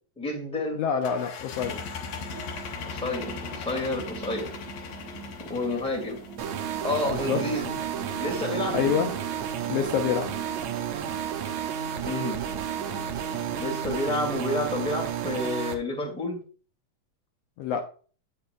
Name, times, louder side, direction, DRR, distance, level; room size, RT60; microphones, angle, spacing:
voice 1, 0.2-0.8 2.9-4.5 5.4-6.2 6.8-7.7 8.2-8.8 12.0-12.4 13.6-16.4, left 2 dB, ahead, 1.5 m, -30 dB
voice 2, 0.8-1.8 7.0-7.4 8.7-9.1 9.7-10.3 17.6-17.8, left 7 dB, 90° left, 1.4 m, -26 dB
sound 1, 1.0-6.6, left 6 dB, 65° left, 1.8 m, -38 dB
sound 2, 1.6-13.8, right 5 dB, 40° left, 4.2 m, -43 dB
sound 3, 6.4-15.8, right 9 dB, 75° right, 1.9 m, -32 dB
8.6 x 6.7 x 2.3 m
omnidirectional pair, 3.5 m